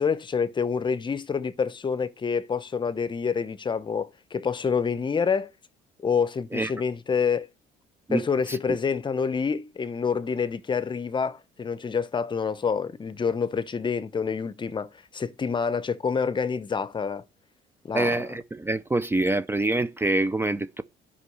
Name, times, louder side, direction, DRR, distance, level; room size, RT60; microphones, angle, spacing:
voice 1, 0.0-5.5 6.0-7.5 8.1-17.2 17.8-18.2, left 6 dB, 30° left, 0.8 m, -27 dB
voice 2, 8.1-8.6 17.9-20.8, right 2 dB, 15° right, 0.5 m, -26 dB
9.8 x 5.6 x 5.3 m
cardioid pair, 110°, 17 cm